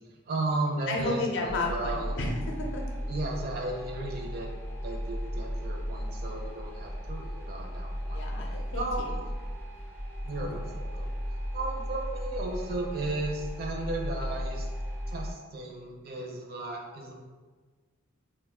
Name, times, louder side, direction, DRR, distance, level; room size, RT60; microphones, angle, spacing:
voice 1, 0.1-2.1 3.1-4.5 4.8-8.2 8.7-9.2 10.2-11.1 11.5-14.7 15.1-17.1, right 2 dB, 50° right, 0 dB, 0.5 m, -35 dB
voice 2, 0.9-2.8 8.1-9.1 10.4-10.5, left 2 dB, 60° left, 1 dB, 0.5 m, -32 dB
sound 1, 1.4-15.3, equal, 10° left, 0.4 m, -35 dB
2.5 x 2.2 x 3.5 m, 1.4 s
head